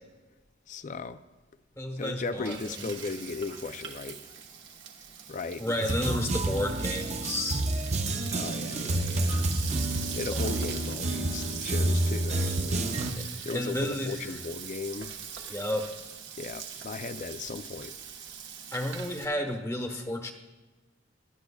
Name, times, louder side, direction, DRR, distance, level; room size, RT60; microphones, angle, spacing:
voice 1, 0.7-1.2 2.0-4.2 5.3-6.2 8.3-9.5 10.1-12.9 13.3-15.1 16.4-17.9, left 4 dB, 45° left, 0.5 m, -37 dB
voice 2, 1.8-2.9 5.6-7.7 10.3-10.5 13.2-14.3 15.5-15.9 18.7-20.3, left 1 dB, 15° left, 1.1 m, -32 dB
Frying (food), 2.0-19.3, right 7 dB, 75° right, 1.3 m, -42 dB
sound 1, 5.8-13.1, right 1 dB, 40° right, 0.7 m, -29 dB
18.0 x 12.0 x 2.3 m
head